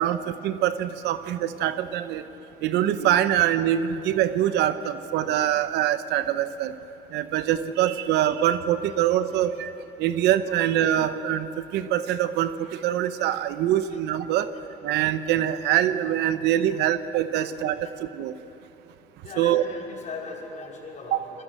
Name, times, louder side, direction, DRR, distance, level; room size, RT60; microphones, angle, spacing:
voice 1, 0.0-2.2 2.6-6.7 7.1-9.7 10.0-11.5 11.7-14.5 14.8-17.8 18.2-18.3 19.4-19.6 21.1-21.2, right 11 dB, 85° right, 12 dB, 0.9 m, -24 dB
voice 2, 9.2-9.6 10.0-10.2 11.0-11.1 17.3-17.4 19.2-21.3, left 4 dB, 45° left, -1 dB, 4.6 m, -40 dB
28.0 x 22.0 x 7.8 m, 3.0 s
cardioid pair, 110°, 17 cm